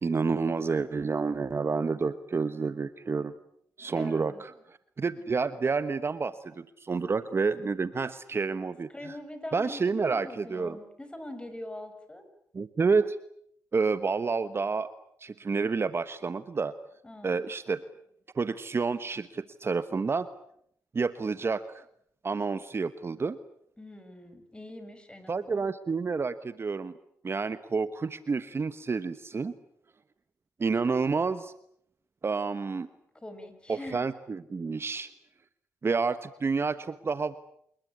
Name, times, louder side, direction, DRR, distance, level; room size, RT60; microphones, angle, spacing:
voice 1, 0.0-3.3 3.8-8.9 9.5-10.8 12.5-13.2 13.7-14.9 15.2-16.7 17.2-17.8 18.3-20.3 20.9-21.8 22.2-23.4 25.3-26.9 27.2-29.5 30.6-31.5 32.2-32.9 33.7-35.1 35.8-37.4, right 4 dB, 40° right, 13 dB, 1.2 m, -29 dB
voice 2, 3.9-4.4 8.9-12.2 17.0-17.4 23.8-25.6 33.2-34.1, left 1 dB, 15° left, 9 dB, 6.4 m, -43 dB
27.5 x 21.0 x 8.6 m, 0.69 s
cardioid pair, 70°, 6 cm